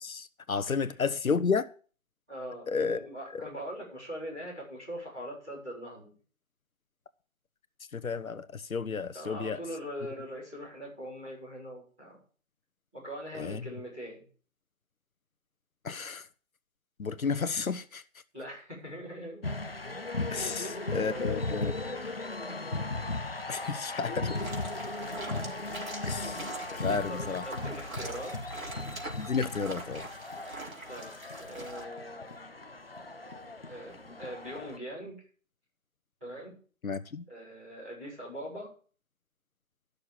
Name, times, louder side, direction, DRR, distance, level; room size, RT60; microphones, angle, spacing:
voice 1, 0.0-1.7 2.7-3.0 3.3-3.4 7.9-9.6 13.4-13.6 15.8-16.3 17.0-18.0 20.3-21.9 23.5-24.4 26.1-26.4 26.8-27.4 29.2-30.1 36.8-37.2, left 5 dB, 80° left, 1.0 m, -32 dB
voice 2, 2.3-6.1 9.1-12.2 12.9-14.3 18.3-19.4 20.3-22.1 26.7-28.3 30.9-32.5 33.7-35.2 36.2-36.6 37.3-38.7, equal, 5° right, 4.3 m, -42 dB
sound 1, 19.4-34.8, left 2 dB, 45° left, 0.7 m, -37 dB
sound 2, 24.3-31.8, right 2 dB, 85° right, 3.8 m, -44 dB
12.0 x 6.7 x 7.2 m
figure-of-eight pair, 180°, 41 cm